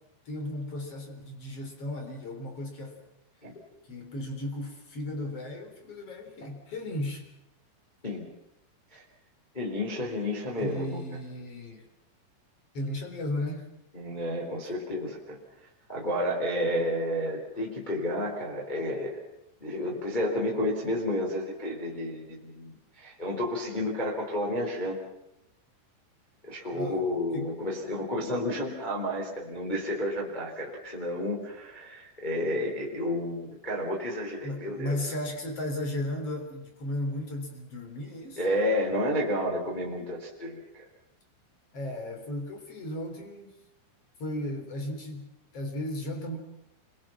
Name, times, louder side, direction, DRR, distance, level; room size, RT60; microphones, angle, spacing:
voice 1, 0.3-3.0 3.9-7.2 10.6-11.9 12.7-13.7 26.7-27.0 27.3-27.5 34.4-38.4 41.7-43.5 44.2-46.4, left 1 dB, 30° left, 4 dB, 4.1 m, -35 dB
voice 2, 9.5-11.0 13.9-15.4 15.9-19.2 19.6-25.0 26.4-35.1 38.4-40.8, left 1 dB, 10° left, -2 dB, 3.3 m, -31 dB
28.0 x 23.5 x 6.0 m, 0.83 s
omnidirectional pair, 5.9 m